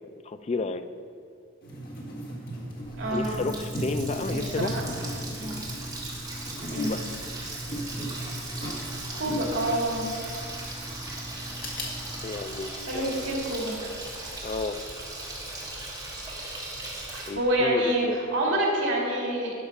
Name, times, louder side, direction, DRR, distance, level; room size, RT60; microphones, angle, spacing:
voice 1, 0.2-0.8 3.1-4.8 6.7-7.0 12.2-13.4 14.4-14.8 17.3-18.2 18.5-18.6, left 3 dB, 35° left, 10 dB, 0.4 m, -32 dB
sound 1, 1.6-12.2, right 1 dB, 50° left, 1.6 m, -37 dB
Water tap faucet, 2.8-17.3, right 2 dB, 20° right, 1.6 m, -38 dB
voice 2, 3.0-3.4 4.3-4.8 5.3-5.6 6.7-7.0 9.1-10.1 12.8-13.7 17.1-19.5, right 1 dB, 75° right, -2 dB, 2.4 m, -27 dB
12.0 x 4.9 x 5.3 m, 2.3 s
head